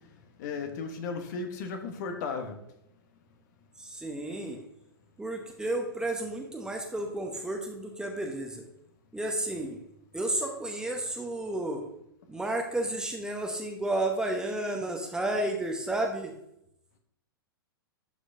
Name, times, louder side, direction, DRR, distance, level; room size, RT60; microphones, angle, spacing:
voice 1, 0.4-2.6, left 4 dB, 50° left, 6 dB, 1.2 m, -35 dB
voice 2, 3.8-4.6 5.2-8.7 9.1-9.8 10.1-11.8 12.3-16.3, right 1 dB, 5° right, 2 dB, 0.9 m, -32 dB
12.0 x 4.9 x 2.7 m, 0.78 s
figure-of-eight pair, 100°, 13 cm